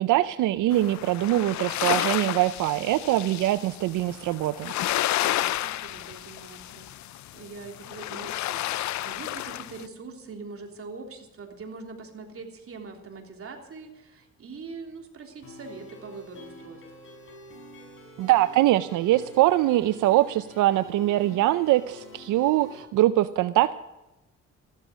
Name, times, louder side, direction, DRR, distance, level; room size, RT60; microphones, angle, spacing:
voice 1, 0.0-4.7 18.2-23.7, right 15 dB, 85° right, 13 dB, 0.6 m, -23 dB
sound 1, 0.7-9.9, left 14 dB, 70° left, 0.6 m, -31 dB
voice 2, 5.2-16.8, right 4 dB, 45° right, 3 dB, 3.5 m, -43 dB
sound 2, 15.4-22.8, left 2 dB, 40° left, 7.3 m, -47 dB
15.0 x 12.5 x 6.3 m, 0.99 s
cardioid pair, 90°, 30 cm